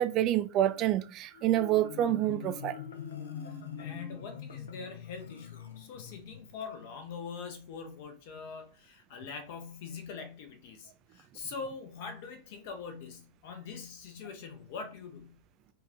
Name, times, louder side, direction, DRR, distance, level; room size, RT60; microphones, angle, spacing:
voice 1, 0.0-2.8, right 12 dB, 35° right, 0.3 m, -27 dB
Marimba xylophone, 1.3-6.5, left 7 dB, 65° left, 0.7 m, -43 dB
voice 2, 3.4-15.4, left 5 dB, 50° left, 1.0 m, -43 dB
4.5 x 2.5 x 3.6 m
figure-of-eight pair, 95°, 0 cm